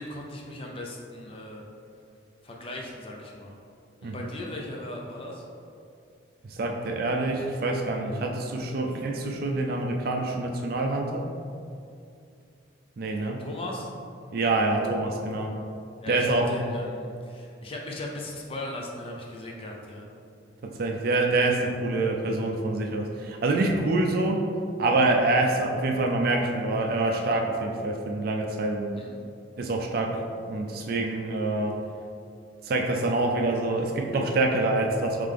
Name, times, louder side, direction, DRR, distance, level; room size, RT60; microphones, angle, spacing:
voice 1, 0.0-1.6 2.4-3.5 4.0-5.4 13.4-13.9 16.0-20.1 29.0-29.1, left 1 dB, 30° left, -1 dB, 0.4 m, -38 dB
voice 2, 6.4-11.3 13.0-13.5 14.3-15.5 16.1-16.5 20.6-24.5 24.8-28.9 29.6-30.2 30.5-31.8 32.6-35.3, right 2 dB, 50° right, 2 dB, 0.4 m, -26 dB
3.4 x 3.3 x 3.6 m, 2.5 s
head